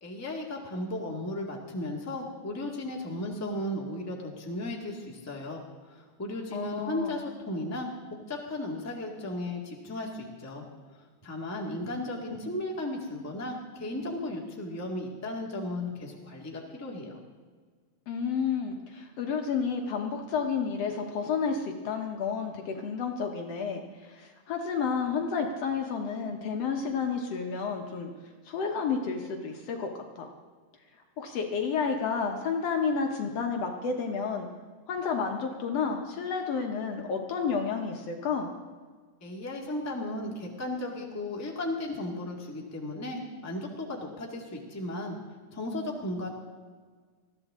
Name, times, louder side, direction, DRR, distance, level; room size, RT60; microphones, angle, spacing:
voice 1, 0.0-10.6 10.9-17.2 39.2-45.2 45.5-46.3, left 1 dB, 5° left, -1 dB, 1.4 m, -35 dB
voice 2, 6.5-7.2 18.1-28.1 28.5-29.9 30.2-30.3 31.2-34.5 34.9-38.5, left 5 dB, 65° left, 3 dB, 2.1 m, -31 dB
20.0 x 14.5 x 3.7 m, 1.5 s
omnidirectional pair, 3.4 m